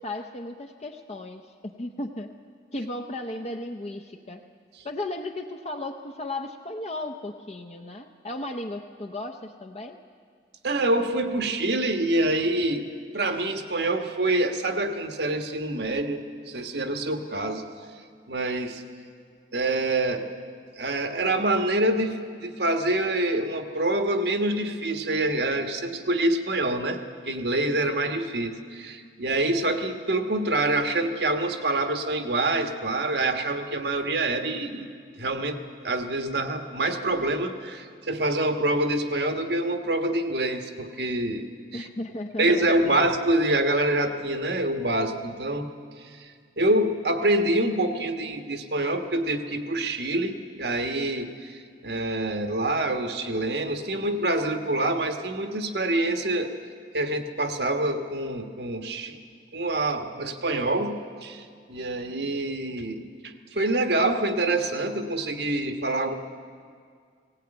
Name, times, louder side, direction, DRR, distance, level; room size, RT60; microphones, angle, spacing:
voice 1, 0.0-2.3 2.7-4.4 4.8-10.0 41.7-43.1, left 2 dB, 35° left, 3 dB, 0.7 m, -35 dB
voice 2, 10.6-17.7 18.3-18.8 19.5-20.3 20.8-27.0 27.3-34.9 35.2-41.9 42.4-45.7 46.0-56.5 56.9-59.2 59.5-66.2, right 1 dB, 65° right, 6 dB, 1.4 m, -26 dB
18.5 x 17.5 x 8.9 m, 2.1 s
head